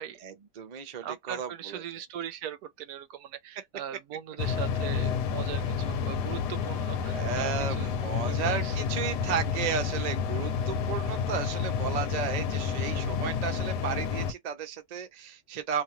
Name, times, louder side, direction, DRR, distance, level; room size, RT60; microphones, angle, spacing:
voice 1, 0.0-1.8 7.1-15.8, right 7 dB, 55° right, 0.4 m, -34 dB
voice 2, 1.0-8.8, right 10 dB, 75° right, 1.0 m, -40 dB
sound 1, 4.4-14.3, left 6 dB, 90° left, 1.2 m, -30 dB
2.8 x 2.4 x 2.9 m
omnidirectional pair, 1.7 m